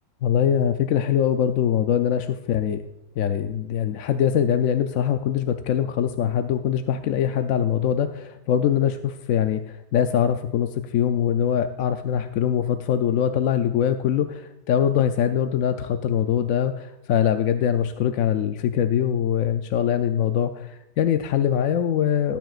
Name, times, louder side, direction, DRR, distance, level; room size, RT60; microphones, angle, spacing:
voice 1, 0.2-2.8 3.2-22.4, left 9 dB, 70° left, 7 dB, 0.9 m, -23 dB
19.0 x 9.2 x 2.4 m, 0.89 s
omnidirectional pair, 1.6 m